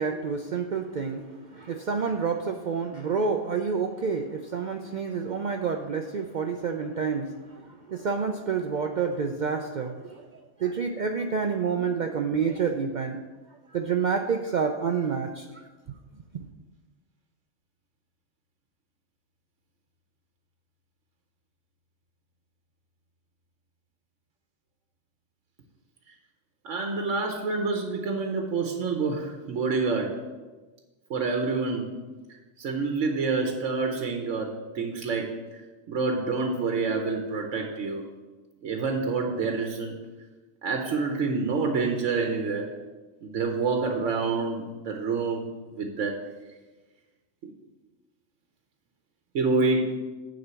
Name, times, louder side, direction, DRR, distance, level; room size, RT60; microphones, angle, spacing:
voice 1, 0.0-10.3 10.6-13.2 13.7-16.0 16.3-16.5, right 5 dB, 60° right, 5 dB, 0.5 m, -29 dB
voice 2, 26.6-30.2 31.1-31.9 32.6-35.4 35.9-38.0 38.6-39.9 40.6-42.7 43.2-46.2 49.3-49.9, right 4 dB, 80° right, 3 dB, 1.2 m, -27 dB
9.7 x 3.9 x 6.8 m, 1.2 s
omnidirectional pair, 1.2 m